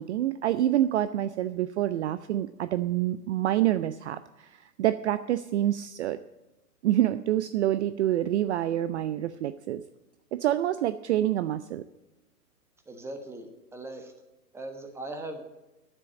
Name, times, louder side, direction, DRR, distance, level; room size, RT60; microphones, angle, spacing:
voice 1, 0.0-6.2 6.8-9.8 10.3-11.8, right 12 dB, 45° right, 13 dB, 0.5 m, -27 dB
voice 2, 12.9-14.1 14.5-15.4, right 2 dB, 5° right, 5 dB, 1.1 m, -39 dB
9.6 x 7.5 x 9.1 m, 1.0 s
hypercardioid pair, 125°, 48 cm